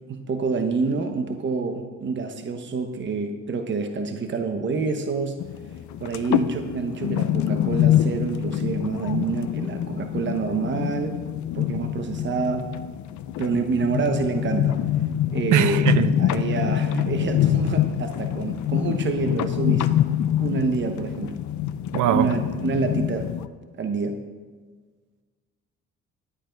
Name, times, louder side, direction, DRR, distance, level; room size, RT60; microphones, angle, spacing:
voice 1, 0.1-5.4 6.0-11.2 11.5-12.7 13.4-14.8 15.3-15.9 16.2-20.0 20.4-21.4 22.1-23.3 23.8-24.2, right 4 dB, 40° right, 6 dB, 0.9 m, -27 dB
sound 1, 5.4-23.5, left 11 dB, 70° left, 0.6 m, -25 dB
voice 2, 15.5-16.1 21.9-22.3, right 11 dB, 80° right, 13 dB, 0.7 m, -21 dB
11.5 x 8.9 x 5.2 m, 1.5 s
cardioid pair, 90°, 30 cm